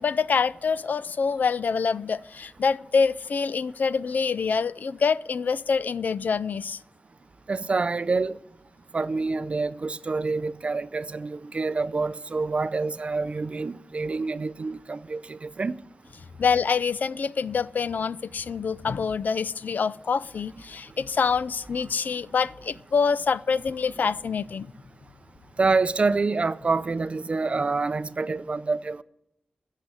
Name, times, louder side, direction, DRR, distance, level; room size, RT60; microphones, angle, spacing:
voice 1, 0.0-6.8 16.4-24.7, left 5 dB, 75° left, 0.4 m, -26 dB
voice 2, 7.5-8.4 8.9-15.8 25.6-29.0, right 3 dB, 45° right, 0.5 m, -27 dB
14.0 x 7.5 x 8.3 m
wide cardioid pair, 125°, 3 cm